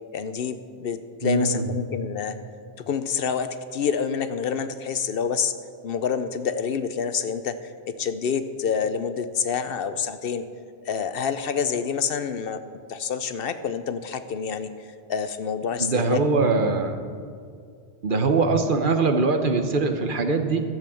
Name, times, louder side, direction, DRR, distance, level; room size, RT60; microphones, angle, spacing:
voice 1, 0.1-2.4 2.9-5.5 5.8-7.6 7.8-10.4 10.9-12.6 12.9-14.7 15.1-16.7, left 6 dB, 65° left, 11 dB, 0.8 m, -27 dB
voice 2, 1.2-1.6 15.8-17.0 18.0-20.6, right 3 dB, 55° right, 6 dB, 1.1 m, -22 dB
12.0 x 7.7 x 7.0 m, 2.2 s
omnidirectional pair, 1.1 m